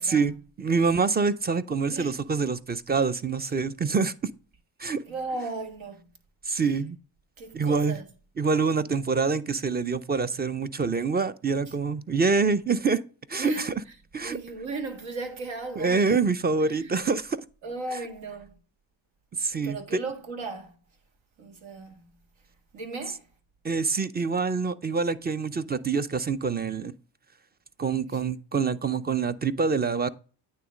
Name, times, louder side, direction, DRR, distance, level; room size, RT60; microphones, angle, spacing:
voice 1, 0.1-4.1 4.8-5.0 6.5-7.0 7.5-8.0 8.4-13.0 13.3-13.7 14.1-14.4 15.8-17.4 19.4-19.8 23.6-26.9 27.8-30.1, right 4 dB, 20° right, 0.5 m, -26 dB
voice 2, 5.1-6.0 7.4-8.1 11.7-11.8 13.4-13.7 14.2-16.0 16.6-17.0 17.6-18.5 19.6-20.8 21.4-22.0 22.7-23.2 28.1-28.2, right 3 dB, 70° right, 1.7 m, -36 dB
9.2 x 3.2 x 5.0 m
supercardioid pair, 65°, 48 cm